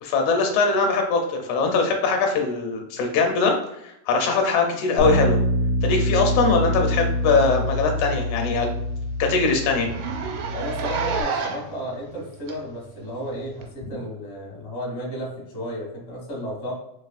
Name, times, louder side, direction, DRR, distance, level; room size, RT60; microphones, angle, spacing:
voice 1, 0.0-3.6 3.8-5.4 5.8-8.7 9.2-9.9, left 4 dB, 80° left, 3 dB, 1.9 m, -21 dB
Bass guitar, 5.0-11.2, left 1 dB, 75° right, 1.3 m, -25 dB
Zipper (clothing), 7.1-7.3 7.7-7.8 8.2-8.3 8.6-8.7 9.0-9.1 9.8-11.8 12.5-12.6 13.6-13.7, right 6 dB, 90° right, 2.1 m, -29 dB
voice 2, 10.5-16.7, equal, 55° left, -4 dB, 0.6 m, -33 dB
4.7 x 3.0 x 2.4 m, 0.81 s
omnidirectional pair, 3.5 m